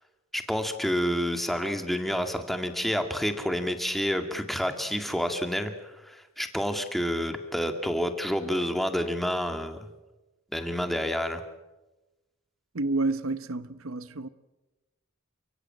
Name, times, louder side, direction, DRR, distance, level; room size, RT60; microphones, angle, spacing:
voice 1, 0.3-9.8 10.5-11.4, equal, ahead, 2.1 m, -29 dB
voice 2, 12.7-14.3, right 2 dB, 85° right, 1.0 m, -29 dB
29.5 x 16.5 x 7.8 m
head